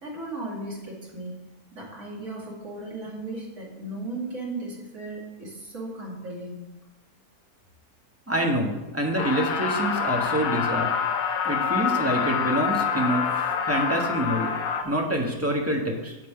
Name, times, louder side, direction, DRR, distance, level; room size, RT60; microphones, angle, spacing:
voice 1, 0.0-1.3 1.8-6.7, right 2 dB, 55° right, -4 dB, 2.6 m, -36 dB
voice 2, 8.3-10.9 11.4-14.5 14.8-16.2, right 1 dB, 10° right, 0 dB, 1.1 m, -26 dB
sound 1, 9.2-14.8, left 7 dB, 70° left, 1.2 m, -26 dB
9.1 x 7.5 x 3.8 m, 1.1 s
omnidirectional pair, 1.6 m